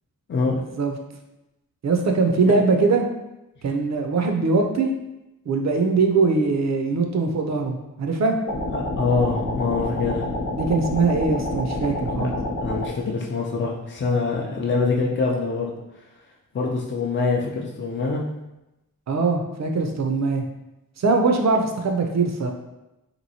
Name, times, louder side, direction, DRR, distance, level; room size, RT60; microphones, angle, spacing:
voice 1, 1.8-3.0 3.6-4.9 5.5-8.3 10.6-12.3 19.1-20.4 21.0-22.5, right 4 dB, 50° right, 3 dB, 0.5 m, -21 dB
sound 1, 8.5-12.9, left 1 dB, 65° left, 0.8 m, -28 dB
voice 2, 9.0-10.3 12.2-12.3 12.6-15.7 16.5-18.3, left 4 dB, 35° left, -2 dB, 0.5 m, -24 dB
2.9 x 2.6 x 2.7 m, 0.96 s
cardioid pair, 60°, 36 cm